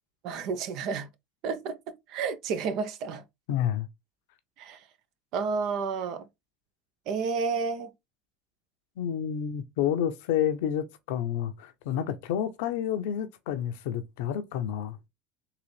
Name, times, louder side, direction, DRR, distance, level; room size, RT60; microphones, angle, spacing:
voice 1, 0.2-1.1 1.4-1.8 2.1-3.2 4.6-4.8 5.3-6.2 7.1-7.9, right 5 dB, 60° right, 0.7 m, -30 dB
voice 2, 3.5-3.9 9.0-15.1, left 9 dB, 75° left, 0.7 m, -29 dB
3.9 x 2.7 x 3.2 m
hypercardioid pair, 90°, 0 cm